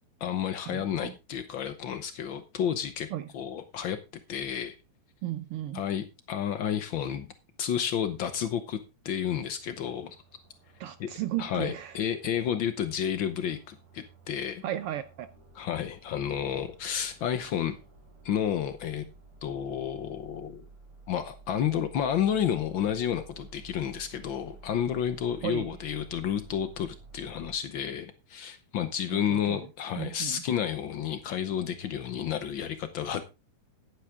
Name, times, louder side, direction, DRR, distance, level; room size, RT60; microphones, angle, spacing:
voice 1, 0.2-3.1 3.3-4.0 4.3-4.8 5.7-7.3 7.6-8.8 9.0-10.2 11.0-11.1 11.4-14.6 15.5-17.7 18.2-19.0 19.4-20.6 21.1-33.2, left 9 dB, 90° left, 1.0 m, -31 dB
voice 2, 0.7-1.1 3.1-3.3 5.2-5.8 10.8-12.0 14.6-15.3 25.4-25.7 29.1-29.6 30.0-30.4, right 13 dB, 85° right, 1.2 m, -35 dB
sound 1, 9.6-27.5, right 4 dB, 60° right, 4.1 m, -53 dB
11.5 x 9.9 x 3.6 m
omnidirectional pair, 3.5 m